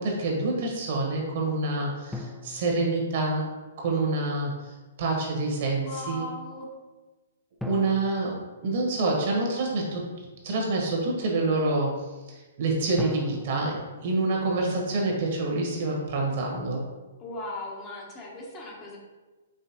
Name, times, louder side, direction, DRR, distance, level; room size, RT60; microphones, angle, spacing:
voice 1, 0.0-3.5 3.8-6.3 7.6-8.3 8.6-10.0 10.4-16.8, right 2 dB, 55° right, -1 dB, 1.4 m, -27 dB
sound 1, 2.1-3.7 7.6-9.5 13.0-15.2, left 2 dB, ahead, 0.3 m, -41 dB
voice 2, 5.8-6.7 17.2-19.0, left 2 dB, 25° left, -2 dB, 1.0 m, -38 dB
5.0 x 3.2 x 3.0 m, 1.2 s
hypercardioid pair, 130°, 0 cm